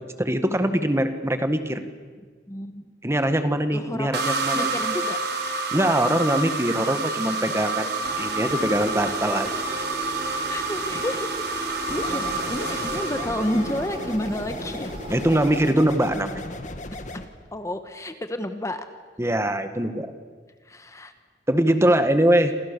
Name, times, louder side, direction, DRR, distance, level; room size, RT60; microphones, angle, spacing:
voice 1, 0.2-1.8 3.0-4.7 5.7-9.5 15.1-16.3 19.2-20.1 21.5-22.5, right 1 dB, 15° right, 8 dB, 1.7 m, -22 dB
voice 2, 2.5-2.9 3.7-4.2 4.5-5.2 10.3-14.9 17.5-18.9 20.7-21.1, left 1 dB, 15° left, 8 dB, 1.4 m, -30 dB
sound 1, 4.1-14.1, right 3 dB, 65° right, 4.0 m, -28 dB
sound 2, 8.0-15.7, right 1 dB, 30° right, 4.6 m, -37 dB
sound 3, 11.9-17.3, left 1 dB, 45° left, 2.1 m, -36 dB
28.0 x 28.0 x 7.0 m, 1.5 s
head